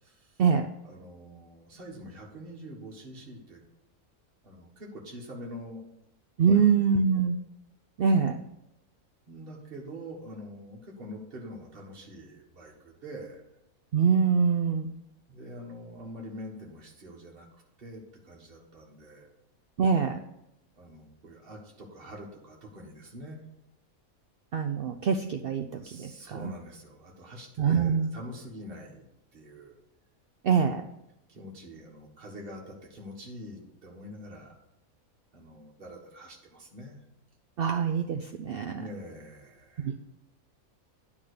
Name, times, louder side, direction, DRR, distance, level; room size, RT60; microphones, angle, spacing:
voice 1, 0.0-0.4 0.8-3.6 4.4-5.8 6.4-6.6 7.1-7.2 9.3-13.4 15.3-19.3 20.7-23.4 25.8-29.0 29.3-29.7 31.3-34.6 35.3-37.0 38.7-39.9, equal, 40° right, -2 dB, 1.7 m, -45 dB
voice 2, 6.4-7.4 8.0-8.4 13.9-14.9 19.8-20.2 24.5-26.5 27.6-28.1 30.4-30.8 37.6-38.8 39.8-40.0, right 6 dB, 70° right, 5 dB, 0.5 m, -24 dB
10.0 x 3.6 x 6.5 m, 0.85 s
omnidirectional pair, 1.5 m